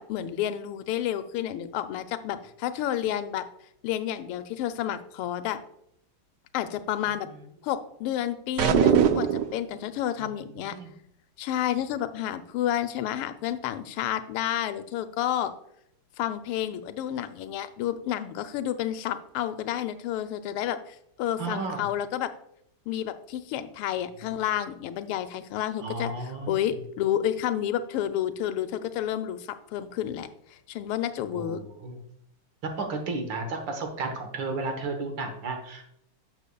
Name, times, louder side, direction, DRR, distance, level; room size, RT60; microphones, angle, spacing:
voice 1, 0.0-3.4 3.8-5.6 6.5-7.3 7.6-10.8 11.4-15.5 16.2-22.3 22.9-31.6, left 11 dB, 85° left, 10 dB, 1.5 m, -30 dB
sound 1, 8.6-9.6, right 10 dB, 80° right, 0.9 m, -21 dB
voice 2, 21.4-21.8 25.8-26.5 31.3-32.0 32.6-35.9, right 3 dB, 60° right, 5 dB, 1.8 m, -33 dB
11.5 x 6.9 x 2.3 m, 0.74 s
omnidirectional pair, 2.4 m